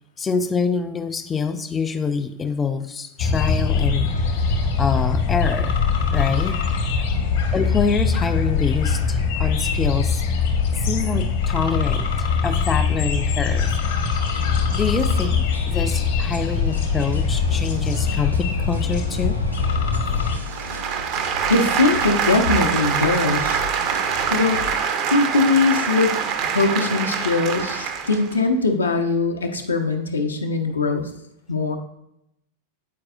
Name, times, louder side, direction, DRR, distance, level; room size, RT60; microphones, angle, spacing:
voice 1, 0.2-4.1 4.4-4.5 4.8-5.8 6.1-7.0 7.5-10.2 10.8-13.7 14.7-19.4, left 5 dB, 15° left, 9 dB, 0.5 m, -26 dB
sound 1, 3.2-20.3, left 5 dB, 55° left, 1.0 m, -22 dB
sound 2, 14.3-24.8, left 1 dB, 85° right, 0.7 m, -36 dB
sound 3, 20.3-28.4, right 7 dB, 40° right, 0.6 m, -24 dB
voice 2, 21.5-23.6 24.3-24.6 25.1-31.1 31.5-31.8, left 3 dB, 75° left, 5 dB, 0.7 m, -21 dB
8.4 x 4.7 x 2.4 m, 0.82 s
figure-of-eight pair, 90°, 0 cm